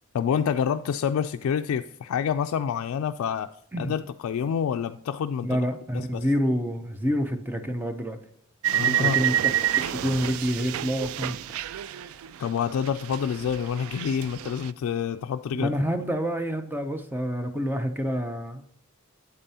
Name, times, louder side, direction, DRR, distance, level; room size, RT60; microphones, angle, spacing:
voice 1, 0.1-3.5 3.8-5.7 5.9-6.2 8.7-9.2 12.4-15.7, left 7 dB, 85° left, 8 dB, 0.3 m, -27 dB
voice 2, 5.4-8.2 8.8-9.3 9.7-11.6 11.9-12.2 15.5-18.8, equal, 10° right, 7 dB, 0.6 m, -28 dB
sound 1, 8.6-12.6 12.8-14.7, right 11 dB, 80° right, 0.3 m, -28 dB
8.8 x 7.9 x 2.8 m, 0.65 s
head